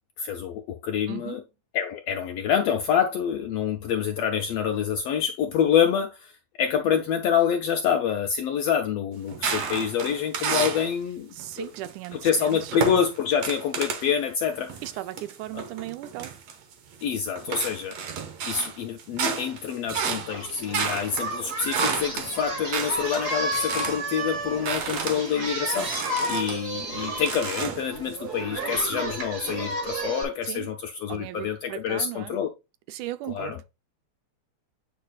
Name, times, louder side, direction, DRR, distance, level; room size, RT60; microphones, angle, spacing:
voice 1, 0.2-1.4 1.7-6.3 6.6-11.7 12.2-14.7 17.0-18.0 18.5-32.5 33.3-33.6, left 8 dB, 80° left, 1.4 m, -26 dB
voice 2, 1.1-1.4 11.3-12.8 14.8-16.4 24.9-25.2 30.4-30.8 31.1-32.4 32.9-33.7, right 15 dB, 90° right, 2.1 m, -37 dB
sound 1, 9.3-10.9 11.4-14.1 14.7-17.0 17.4-24.1 24.4-26.7 27.2-28.2, right 6 dB, 65° right, 2.1 m, -32 dB
Singing, 20.3-30.2, right 1 dB, 35° right, 2.0 m, -32 dB
8.8 x 5.5 x 2.3 m
omnidirectional pair, 3.4 m